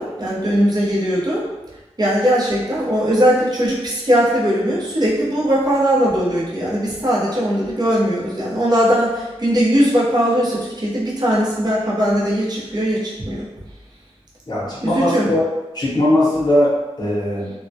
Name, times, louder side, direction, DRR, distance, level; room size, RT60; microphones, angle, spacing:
voice 1, 0.0-1.4 2.0-13.5 14.8-15.3, equal, 40° right, -6 dB, 0.7 m, -19 dB
voice 2, 14.5-15.4 15.7-17.5, left 1 dB, 40° left, -7 dB, 0.8 m, -19 dB
2.2 x 2.1 x 2.6 m, 1.1 s
wide cardioid pair, 75°, 11 cm